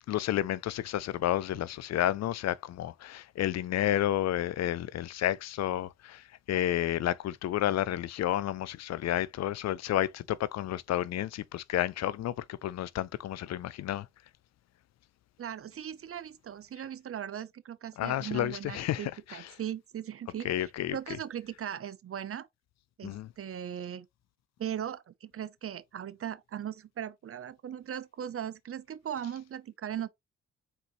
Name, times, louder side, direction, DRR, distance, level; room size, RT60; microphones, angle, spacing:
voice 1, 0.1-14.1 18.0-19.4 20.4-21.0 23.0-23.3, left 12 dB, 60° left, 0.4 m, -31 dB
voice 2, 15.4-20.5 20.9-22.5 23.0-24.1 24.6-30.1, right 9 dB, 50° right, 0.7 m, -38 dB
4.2 x 3.9 x 3.0 m
supercardioid pair, 55°, 30 cm